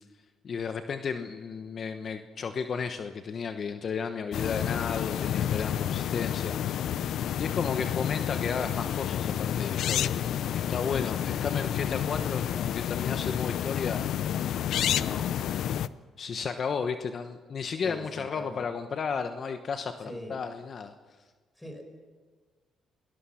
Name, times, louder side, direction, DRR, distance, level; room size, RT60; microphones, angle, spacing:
voice 1, 0.4-6.6 6.9-7.0 7.4-14.0 14.7-15.4 16.2-20.9, left 6 dB, 50° left, 7 dB, 1.1 m, -33 dB
sound 1, 4.3-15.9, left 10 dB, 75° left, 0.6 m, -30 dB
voice 2, 17.8-18.6 20.0-20.4 21.6-21.8, equal, 5° left, 5 dB, 5.7 m, -42 dB
29.5 x 19.5 x 5.9 m, 1.4 s
cardioid pair, 90°, 0 cm